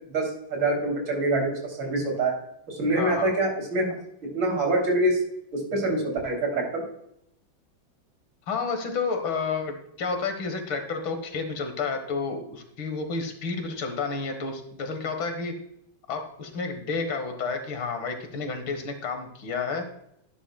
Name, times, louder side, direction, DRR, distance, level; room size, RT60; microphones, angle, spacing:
voice 1, 0.1-2.3 2.7-4.0 4.2-5.2 5.5-6.8, right 2 dB, 75° right, 1 dB, 3.9 m, -25 dB
voice 2, 3.0-3.3 8.5-15.5 16.1-19.9, left 4 dB, 75° left, 6 dB, 2.3 m, -30 dB
11.5 x 10.0 x 2.3 m, 0.77 s
omnidirectional pair, 2.2 m